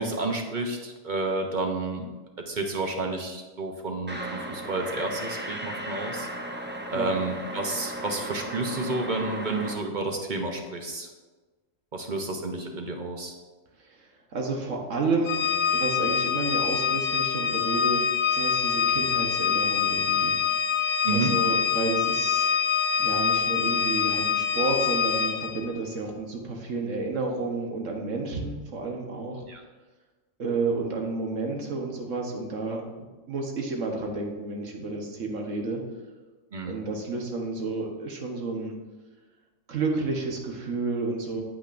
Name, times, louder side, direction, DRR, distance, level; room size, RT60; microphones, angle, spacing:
voice 1, 0.0-2.1 2.5-4.2 4.5-6.3 6.9-11.1 11.9-13.3 21.0-21.3 29.5-29.6 36.5-36.7, right 2 dB, 45° right, 3 dB, 0.8 m, -30 dB
sound 1, 4.1-9.7, right 1 dB, 15° right, 0.5 m, -36 dB
voice 2, 13.8-20.3 21.1-22.5 23.0-29.4 30.4-35.8 36.6-38.8 39.7-41.4, right 3 dB, 75° right, 1 dB, 1.4 m, -31 dB
Organ, 15.2-25.7, left 7 dB, 65° left, 0.4 m, -25 dB
8.7 x 8.0 x 2.6 m, 1.3 s
omnidirectional pair, 1.4 m